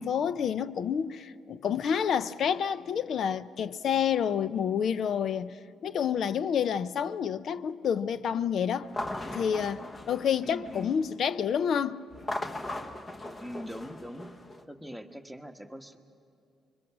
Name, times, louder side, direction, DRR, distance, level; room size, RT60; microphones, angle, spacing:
voice 1, 0.0-5.5 5.8-8.9 9.3-12.0, left 8 dB, 65° left, 0.5 m, -29 dB
sound 1, 8.8-11.1 12.1-14.6, left 1 dB, 25° left, 1.2 m, -38 dB
voice 2, 10.4-11.0 13.4-14.3 14.7-16.0, equal, ahead, 1.3 m, -42 dB
25.5 x 23.0 x 6.1 m
cardioid pair, 90°, 0 cm